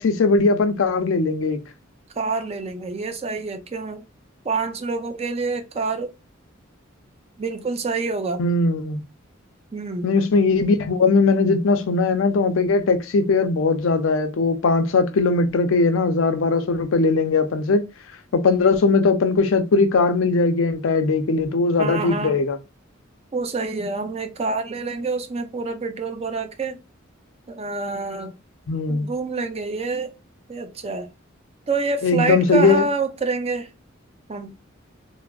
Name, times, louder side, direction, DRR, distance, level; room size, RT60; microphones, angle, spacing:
voice 1, 0.0-1.6 8.4-9.0 10.0-17.8 18.3-22.6 28.7-29.1 32.0-32.8, left 3 dB, 75° left, 0.5 m, -19 dB
voice 2, 2.2-4.0 4.4-6.1 7.4-8.4 9.7-10.1 21.8-22.4 23.3-26.8 27.5-28.3 28.9-30.1 30.5-31.1 31.7-33.7 34.3-34.5, right 3 dB, 30° right, 0.4 m, -27 dB
3.3 x 2.0 x 2.2 m
head